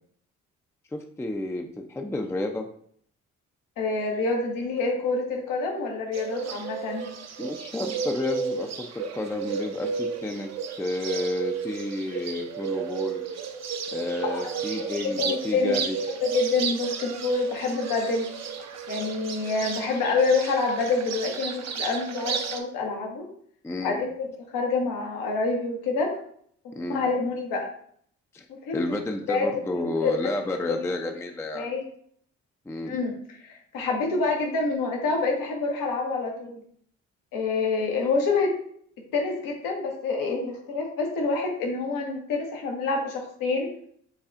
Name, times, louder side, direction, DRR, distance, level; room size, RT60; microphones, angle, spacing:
voice 1, 0.9-2.7 7.4-10.5 10.8-13.3 13.9-16.0 23.6-24.0 26.8-27.0 28.3-28.5 28.7-31.7 32.7-33.0, left 2 dB, 10° left, 4 dB, 0.4 m, -31 dB
voice 2, 3.8-7.1 14.3-15.7 16.2-18.3 18.9-23.3 23.8-24.3 24.5-26.1 26.6-27.7 28.7-28.8 29.3-30.3 30.7-30.9 31.5-31.8 32.8-36.6 37.3-38.5 39.1-43.7, left 3 dB, 80° left, 1 dB, 1.0 m, -27 dB
Bird, 6.1-22.6, right 6 dB, 50° right, 0.6 m, -33 dB
7.0 x 2.3 x 2.5 m, 0.63 s
supercardioid pair, 50°, 33 cm